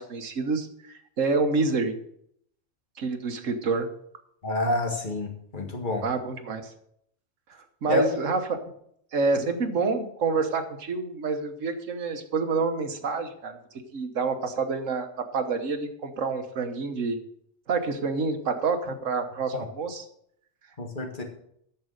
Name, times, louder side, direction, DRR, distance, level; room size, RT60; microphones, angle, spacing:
voice 1, 0.0-2.0 3.0-3.9 6.0-6.7 7.5-8.4 9.1-13.6 13.9-15.1 15.3-17.2 17.7-20.0, right 4 dB, 80° right, 7 dB, 1.5 m, -28 dB
voice 2, 4.4-6.0 7.9-8.0 19.5-19.6 20.8-21.2, left 2 dB, 40° left, 1 dB, 2.0 m, -28 dB
10.0 x 6.9 x 6.4 m, 0.72 s
omnidirectional pair, 1.3 m